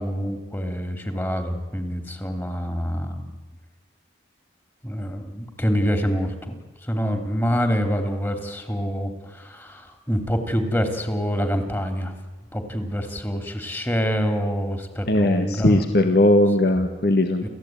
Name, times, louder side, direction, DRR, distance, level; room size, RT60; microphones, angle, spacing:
voice 1, 0.0-3.2 4.8-6.5 6.8-12.1 12.5-15.8 16.6-16.9 17.4-17.5, equal, 15° left, 7 dB, 3.0 m, -26 dB
voice 2, 15.1-17.5, left 1 dB, 65° left, 6 dB, 1.7 m, -19 dB
29.5 x 15.0 x 9.3 m, 1.3 s
head